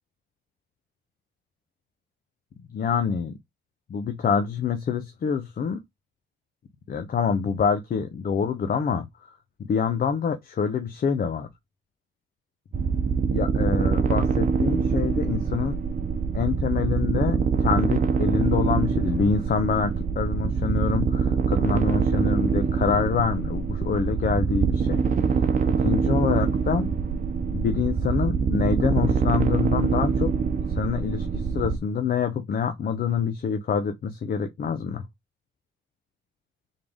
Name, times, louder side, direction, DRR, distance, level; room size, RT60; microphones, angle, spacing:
voice 1, 2.7-3.4 3.9-5.8 6.9-9.3 9.6-11.5 13.3-15.8 16.3-25.0 25.7-26.9 27.5-30.3 30.8-35.0, left 6 dB, 45° left, 0.7 m, -26 dB
sound 1, 12.7-31.8, right 5 dB, 40° right, 0.9 m, -24 dB
3.7 x 3.6 x 3.5 m
cardioid pair, 90°, 20 cm